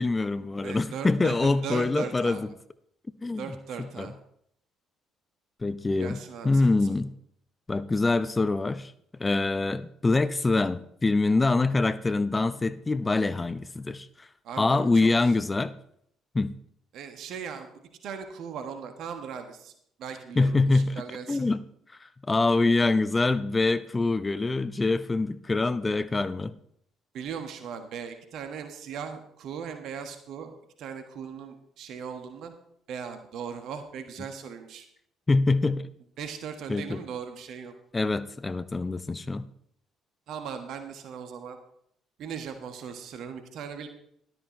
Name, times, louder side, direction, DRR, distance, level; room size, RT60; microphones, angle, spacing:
voice 1, 0.0-2.4 3.2-3.5 3.8-4.1 5.6-7.1 7.7-8.9 9.2-14.1 14.6-15.7 16.3-16.5 20.4-20.9 21.3-21.6 22.0-26.5 35.3-35.9 36.7-37.0 37.9-39.5, left 3 dB, 20° left, 14 dB, 0.7 m, -25 dB
voice 2, 0.6-2.4 3.4-4.1 6.0-6.9 14.4-15.4 16.9-17.7 18.0-19.7 20.0-21.5 27.1-30.5 30.8-32.5 32.9-34.8 36.2-37.7 40.3-41.6 42.2-43.9, right 7 dB, 55° right, 7 dB, 1.4 m, -38 dB
13.0 x 12.5 x 3.2 m, 0.70 s
figure-of-eight pair, 50°, 0 cm